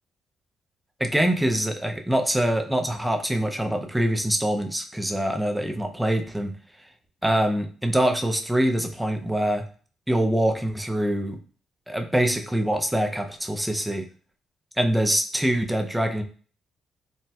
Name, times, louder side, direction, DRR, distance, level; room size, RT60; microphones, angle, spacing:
voice 1, 1.0-6.6 7.2-9.7 10.1-11.4 11.9-14.1 14.8-16.2, right 1 dB, 5° right, 4 dB, 0.4 m, -24 dB
4.0 x 2.1 x 2.2 m, 0.42 s
cardioid pair, 95°, 0 cm